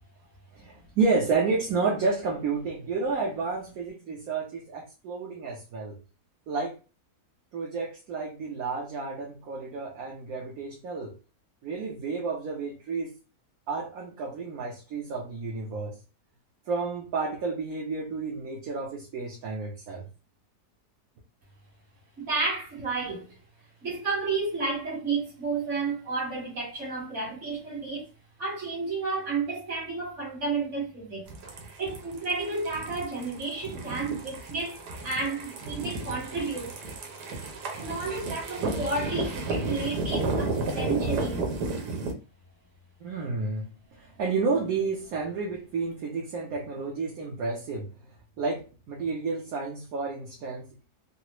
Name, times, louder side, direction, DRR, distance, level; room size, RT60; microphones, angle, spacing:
voice 1, 0.5-6.0 6.5-6.8 7.5-11.1 11.6-13.1 13.7-16.0 16.7-20.1 39.2-39.3 43.0-47.9 48.4-51.0, right 4 dB, 65° right, 1.2 m, -31 dB
voice 2, 22.2-23.4 23.8-28.1 28.4-31.4 31.8-34.8 35.0-36.9 37.8-41.7, right 3 dB, 50° right, 1.9 m, -31 dB
sound 1, 31.3-42.1, right 3 dB, 90° right, 1.4 m, -32 dB
4.0 x 2.1 x 2.9 m
omnidirectional pair, 1.7 m